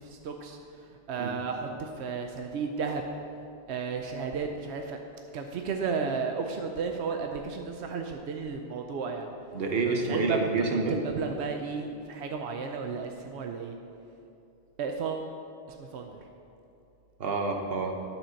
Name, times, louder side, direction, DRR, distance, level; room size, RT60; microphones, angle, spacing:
voice 1, 0.0-3.0 3.7-5.0 5.3-9.3 9.8-10.4 10.9-13.8 14.8-15.3 15.7-16.2, right 5 dB, 90° right, 4 dB, 0.9 m, -33 dB
voice 2, 9.5-11.0 17.2-17.9, right 3 dB, 65° right, 2 dB, 1.2 m, -28 dB
11.0 x 4.4 x 6.3 m, 2.6 s
omnidirectional pair, 1.1 m